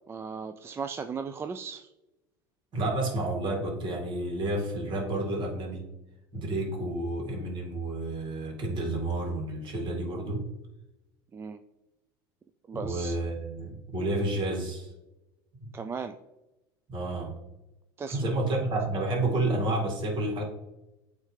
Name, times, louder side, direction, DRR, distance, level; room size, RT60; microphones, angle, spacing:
voice 1, 0.1-1.9 11.3-11.6 12.7-13.2 15.7-16.1 18.0-18.4, right 5 dB, 20° right, 8 dB, 0.3 m, -36 dB
voice 2, 2.7-5.9 6.3-10.4 12.7-14.9 15.6-15.7 16.9-17.3 18.1-20.4, right 2 dB, 45° right, 0 dB, 2.2 m, -30 dB
8.9 x 3.3 x 3.2 m, 0.98 s
supercardioid pair, 100°, 11 cm